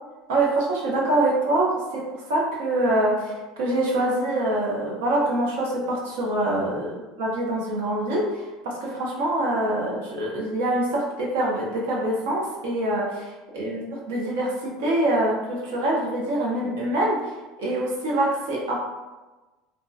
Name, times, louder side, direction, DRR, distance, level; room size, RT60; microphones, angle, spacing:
voice 1, 0.3-17.3 17.6-18.8, right 1 dB, 90° right, -3 dB, 0.7 m, -25 dB
2.3 x 2.1 x 2.5 m, 1.2 s
supercardioid pair, 145°, 0 cm